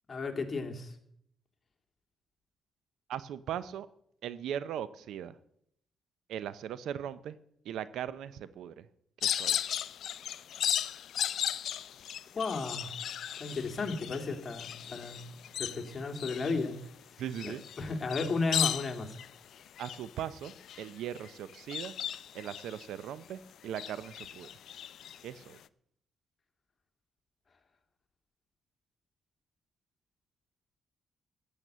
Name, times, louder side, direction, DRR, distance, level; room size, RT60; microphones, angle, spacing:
voice 1, 0.1-0.9 12.3-12.9 13.4-15.2 15.6-16.7 17.4-19.1, left 3 dB, 35° left, 4 dB, 2.4 m, -34 dB
voice 2, 3.1-3.9 4.2-5.3 6.3-7.3 7.7-8.9 9.2-9.6 17.2-17.6 19.8-20.5 20.8-21.9 22.3-24.5 25.2-25.6, right 9 dB, 80° right, 15 dB, 0.7 m, -39 dB
sound 1, 9.2-23.3 23.7-25.6, left 10 dB, 70° left, 0.5 m, -36 dB
15.0 x 8.9 x 6.8 m, 0.72 s
cardioid pair, 90°, 0 cm